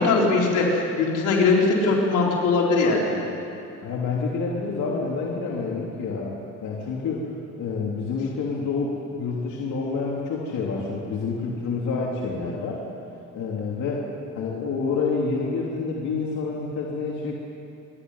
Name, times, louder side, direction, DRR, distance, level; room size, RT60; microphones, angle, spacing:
voice 1, 0.0-3.2, left 3 dB, 85° left, -2 dB, 4.1 m, -21 dB
voice 2, 3.8-6.3 6.6-7.2 7.6-12.8 13.3-14.1 14.3-17.4, left 4 dB, 70° left, -3 dB, 3.1 m, -28 dB
28.0 x 11.5 x 9.7 m, 2.7 s
cardioid pair, 90°, 30 cm